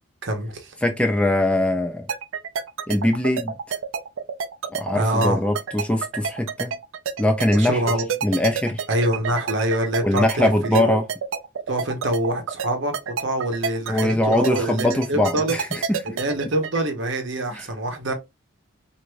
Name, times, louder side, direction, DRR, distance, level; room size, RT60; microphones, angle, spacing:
voice 1, 0.2-0.7 4.9-5.4 7.5-8.1 8.9-11.0 11.7-15.6 16.0-18.1, right 1 dB, 60° right, 0.9 m, -25 dB
voice 2, 0.8-2.1 2.9-3.5 4.7-6.7 7.2-7.8 8.2-8.8 10.0-11.0 13.9-16.0 17.5-17.6, left 1 dB, 5° left, 0.4 m, -22 dB
sound 1, 2.1-16.8, right 6 dB, 80° right, 0.5 m, -28 dB
4.6 x 2.6 x 2.3 m
head